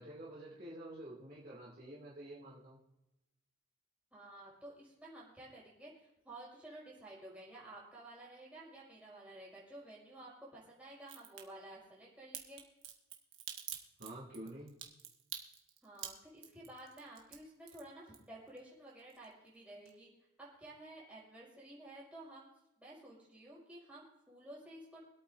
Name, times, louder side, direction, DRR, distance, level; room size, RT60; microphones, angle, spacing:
voice 1, 0.0-2.8 14.0-14.7, right 1 dB, 40° right, -6 dB, 2.6 m, -49 dB
voice 2, 4.1-12.7 15.8-20.1 20.6-22.5 22.8-25.0, right 1 dB, 5° right, -7 dB, 5.2 m, -53 dB
Crack, 11.1-11.4 12.3-18.6 18.9-19.6 19.9-20.0, right 10 dB, 60° right, 1.6 m, -47 dB
25.5 x 8.7 x 2.7 m, 0.93 s
head